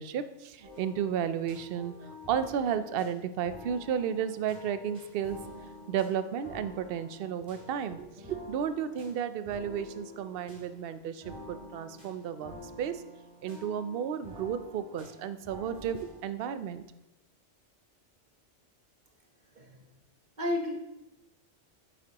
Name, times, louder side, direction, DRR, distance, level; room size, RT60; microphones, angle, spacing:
voice 1, 0.0-1.9 2.3-5.4 5.9-13.0 13.4-16.8, right 8 dB, 60° right, 12 dB, 0.7 m, -33 dB
sound 1, 0.6-16.2, left 1 dB, 25° right, 3.1 m, -49 dB
voice 2, 20.4-20.7, left 1 dB, 40° right, 1 dB, 1.2 m, -31 dB
9.3 x 7.6 x 2.9 m, 0.95 s
omnidirectional pair, 1.2 m